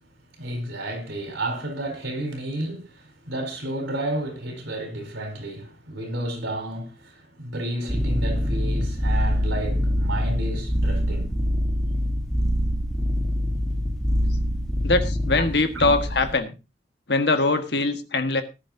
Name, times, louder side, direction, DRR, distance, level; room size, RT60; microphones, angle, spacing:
voice 1, 0.4-11.3 15.7-15.9, right 1 dB, 90° right, 4.5 m, -31 dB
sound 1, 7.9-16.4, equal, 5° left, 2.4 m, -24 dB
voice 2, 14.8-16.5 17.1-18.4, left 3 dB, 60° left, 1.5 m, -22 dB
19.0 x 10.5 x 2.7 m
head